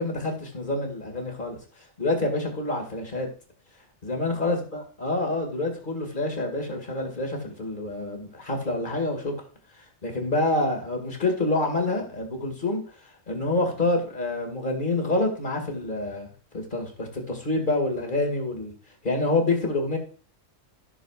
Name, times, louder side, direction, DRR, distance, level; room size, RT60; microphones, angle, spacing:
voice 1, 0.0-1.6 2.0-3.3 4.0-9.3 10.0-12.8 13.3-18.7 19.0-20.0, left 2 dB, 40° left, 3 dB, 2.3 m, -27 dB
14.5 x 6.7 x 2.4 m, 0.38 s
omnidirectional pair, 1.3 m